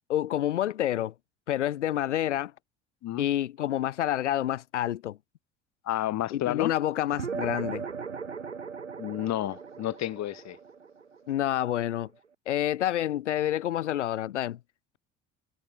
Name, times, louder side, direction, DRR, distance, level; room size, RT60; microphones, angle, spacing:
voice 1, 0.1-1.1 1.5-2.5 3.2-5.2 6.3-7.9 11.3-12.1 12.5-14.6, left 12 dB, 80° left, 1.5 m, -28 dB
voice 2, 5.8-6.7 9.0-10.6, left 13 dB, 50° left, 2.8 m, -31 dB
sound 1, 7.1-11.9, right 5 dB, 85° right, 3.1 m, -38 dB
figure-of-eight pair, 60°, 35 cm